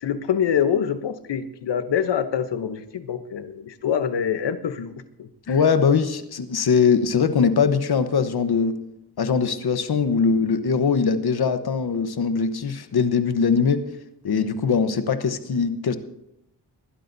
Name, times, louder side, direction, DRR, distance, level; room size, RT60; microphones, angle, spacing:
voice 1, 0.0-5.6, left 8 dB, 85° left, 10 dB, 1.0 m, -25 dB
voice 2, 5.5-8.8 9.2-13.8 14.2-16.0, left 5 dB, 65° left, 10 dB, 1.1 m, -21 dB
20.0 x 12.5 x 2.7 m, 0.81 s
cardioid pair, 65°, 41 cm